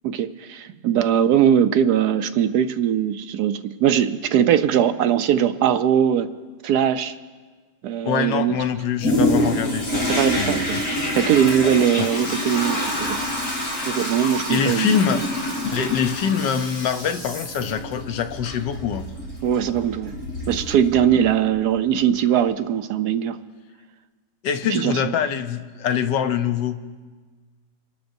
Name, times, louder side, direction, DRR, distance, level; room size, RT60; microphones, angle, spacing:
voice 1, 0.0-6.3 6.6-7.1 7.8-8.5 10.1-10.8 11.1-13.2 13.9-15.0 19.4-20.1 20.5-23.4 24.7-25.1, right 9 dB, 70° right, 10 dB, 1.0 m, -20 dB
voice 2, 8.0-10.1 10.4-10.8 12.0-12.1 14.5-15.2 15.7-19.1 24.4-26.8, left 8 dB, 85° left, 8 dB, 1.4 m, -24 dB
Toilet flush, 9.0-21.4 22.0-22.1, left 1 dB, 55° left, 4.3 m, -27 dB
28.5 x 13.0 x 2.7 m, 1.4 s
omnidirectional pair, 1.9 m